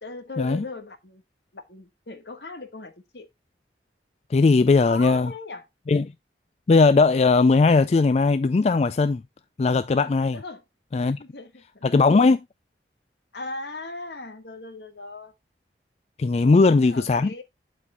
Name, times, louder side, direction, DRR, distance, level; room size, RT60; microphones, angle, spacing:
voice 1, 0.0-1.2 1.5-3.3 4.8-5.7 10.3-10.6 11.0-11.9 13.3-15.3 16.4-17.4, left 3 dB, 70° left, 1.5 m, -38 dB
voice 2, 4.3-5.3 5.9-6.1 6.7-9.2 9.6-10.4 10.9-11.2 11.8-12.4 16.2-17.3, left 3 dB, 35° left, 0.3 m, -19 dB
12.0 x 4.4 x 2.3 m
head